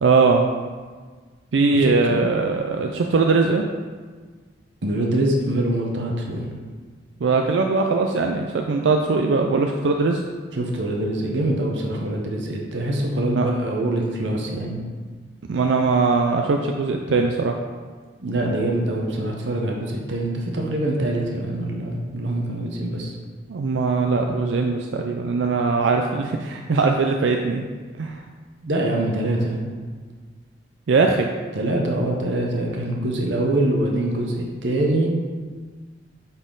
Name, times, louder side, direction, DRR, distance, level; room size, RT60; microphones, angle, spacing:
voice 1, 0.0-0.5 1.5-3.6 7.2-10.2 13.3-13.5 15.5-17.6 23.5-27.6 28.0-28.2 30.9-31.3, right 4 dB, 90° right, 3 dB, 0.4 m, -20 dB
voice 2, 1.7-2.2 4.8-6.5 10.6-14.8 18.2-23.1 28.6-29.6 31.5-34.3 34.6-35.1, right 1 dB, 70° right, 0 dB, 0.9 m, -24 dB
8.0 x 4.2 x 3.9 m, 1.5 s
head